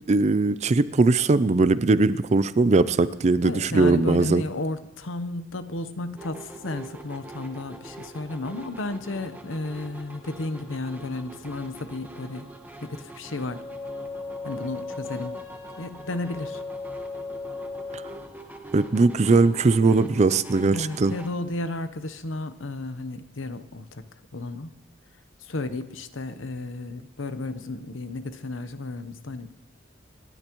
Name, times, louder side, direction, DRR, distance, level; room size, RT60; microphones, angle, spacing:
voice 1, 0.1-4.4 18.7-21.1, right 3 dB, 35° right, 15 dB, 0.5 m, -20 dB
voice 2, 3.4-12.5 12.8-13.6 14.4-15.4 15.8-16.6 20.7-24.0 24.3-24.7 25.4-29.5, left 2 dB, 80° left, 10 dB, 0.9 m, -33 dB
sound 1, 6.2-21.3, right 2 dB, 10° right, 1.3 m, -44 dB
sound 2, 13.4-18.3, left 3 dB, 35° left, 2.1 m, -37 dB
27.5 x 12.0 x 3.1 m, 0.97 s
head